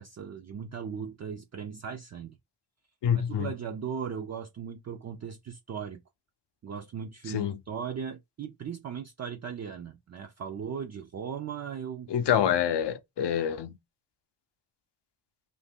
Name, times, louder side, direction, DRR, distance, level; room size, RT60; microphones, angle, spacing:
voice 1, 0.0-2.4 3.1-6.0 6.6-12.1, right 7 dB, 35° right, 0.4 m, -38 dB
voice 2, 3.0-3.5 7.3-7.5 12.1-13.8, left 9 dB, 60° left, 0.6 m, -26 dB
2.6 x 2.2 x 3.4 m
cardioid pair, 65°, 49 cm